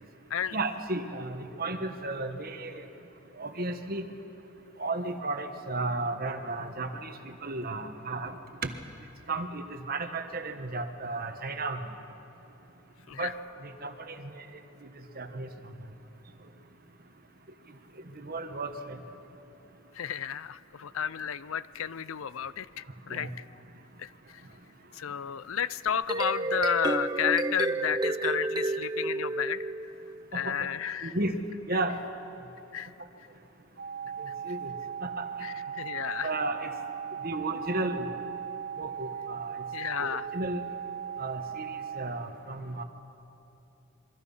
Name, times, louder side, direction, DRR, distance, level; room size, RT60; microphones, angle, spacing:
voice 1, 0.5-2.9 3.4-4.0 4.8-8.3 8.6-8.7 9.3-11.8 13.2-13.3 13.6-14.4 14.8-14.9 15.2-15.5 18.2-19.0 23.1-23.3 30.3-30.6 31.0-31.4 31.7-32.0 34.4-34.7 35.0-35.3 36.2-36.7 37.2-38.1 38.8-39.6 40.0-40.6 41.2-42.8, right 2 dB, 45° right, 6 dB, 1.4 m, -34 dB
voice 2, 19.9-23.4 24.0-24.4 24.9-29.7 30.3-31.1 32.7-32.9 35.4-36.3 39.7-40.3, left 8 dB, 75° left, 17 dB, 0.5 m, -32 dB
sound 1, 25.9-30.2, right 2 dB, 20° right, 0.6 m, -30 dB
sound 2, 33.8-42.1, right 8 dB, 70° right, 1.9 m, -38 dB
27.0 x 23.5 x 5.6 m, 2.9 s
head